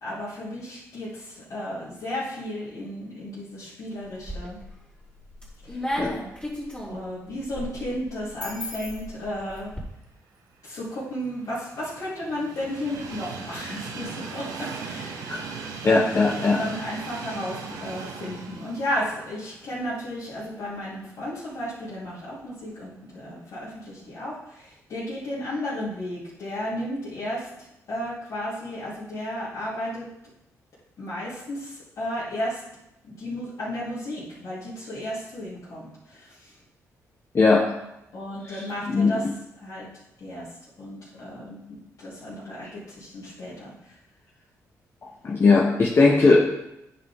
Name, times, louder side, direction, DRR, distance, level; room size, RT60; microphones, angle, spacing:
voice 1, 0.0-4.6 5.6-5.8 6.9-9.7 10.6-15.3 15.8-16.0 16.4-27.5 27.9-30.1 31.0-32.6 33.0-36.5 38.1-39.2 39.6-39.8 40.2-40.5 40.8-43.7, equal, 65° left, -11 dB, 3.2 m, -33 dB
sound 1, 4.0-4.7 5.2-9.8, left 1 dB, 15° left, 3.3 m, -34 dB
Train, 10.7-20.8 21.2-21.3 22.4-22.5, right 5 dB, 80° right, 1.1 m, -38 dB
voice 2, 15.8-16.6 37.3-37.6 38.5-39.3 45.2-46.5, left 3 dB, 40° left, -2 dB, 1.1 m, -19 dB
9.5 x 5.4 x 3.7 m, 0.86 s
cardioid pair, 90°, 6 cm